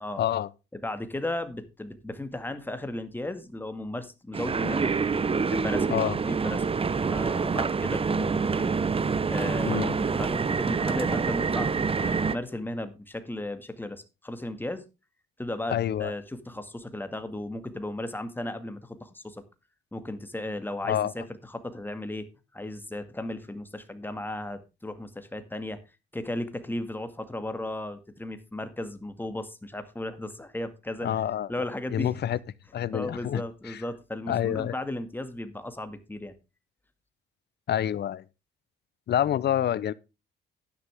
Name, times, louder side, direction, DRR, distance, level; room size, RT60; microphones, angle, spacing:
voice 1, 0.2-0.5 5.9-6.2 9.6-10.1 15.7-16.1 20.8-21.1 31.0-31.5 31.9-32.4 32.7-33.8 34.3-34.7 37.7-38.2 39.1-39.9, left 10 dB, 55° left, 0.8 m, -27 dB
voice 2, 0.7-4.9 5.5-6.8 7.0-8.8 9.3-14.8 15.4-19.4 19.9-25.8 26.1-31.2 31.5-32.1 32.9-36.3, left 1 dB, 10° left, 2.0 m, -35 dB
sound 1, 4.3-12.4, right 5 dB, 30° right, 0.8 m, -26 dB
11.0 x 10.0 x 3.5 m
cardioid pair, 90°, 20 cm